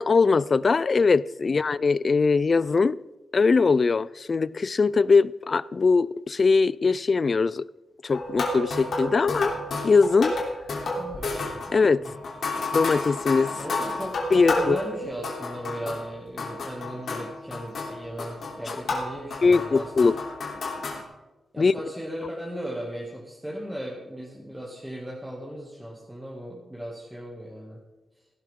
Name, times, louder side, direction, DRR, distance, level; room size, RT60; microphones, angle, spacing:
voice 1, 0.0-3.0 3.3-7.7 8.0-9.5 9.8-10.4 11.7-12.0 12.7-13.5 14.3-14.8 18.7-18.8 19.4-20.2 21.6-21.7, left 4 dB, 40° left, 0.3 m, -21 dB
sound 1, 8.1-16.1 16.4-21.0, left 2 dB, 75° left, 3.2 m, -31 dB
voice 2, 11.0-11.4 12.0-12.1 13.6-20.1 21.5-27.8, equal, 5° right, 2.1 m, -37 dB
17.0 x 12.0 x 3.7 m
wide cardioid pair, 130°, 0 cm